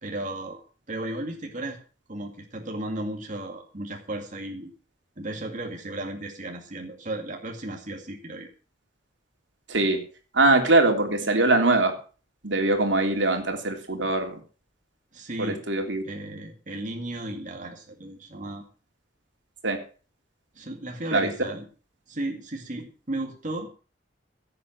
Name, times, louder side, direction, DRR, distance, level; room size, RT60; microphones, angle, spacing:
voice 1, 0.0-1.8 2.1-4.7 5.2-8.5 15.1-15.6 16.0-18.6 20.6-21.7 22.1-23.7, right 1 dB, 45° right, 2 dB, 2.2 m, -34 dB
voice 2, 10.3-11.9 12.4-14.4 15.4-16.0 19.6-19.8 21.1-21.3, right 2 dB, 80° right, 4 dB, 3.2 m, -22 dB
16.5 x 7.8 x 6.2 m, 0.38 s
head